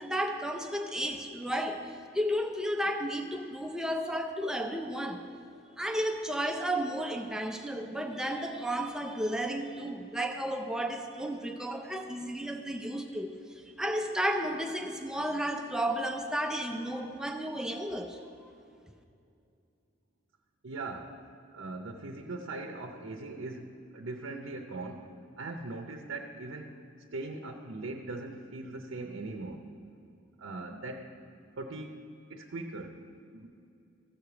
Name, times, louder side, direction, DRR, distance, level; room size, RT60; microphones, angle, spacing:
voice 1, 0.0-1.9 2.1-5.2 5.8-13.4 13.8-18.5, equal, 5° right, 4 dB, 0.5 m, -33 dB
voice 2, 20.6-21.2 21.5-25.1 25.4-26.8 27.1-29.7 30.4-31.1 31.6-32.0 32.3-33.1 33.3-33.5, right 2 dB, 80° right, 3 dB, 0.7 m, -40 dB
14.5 x 4.9 x 6.9 m, 2.5 s
head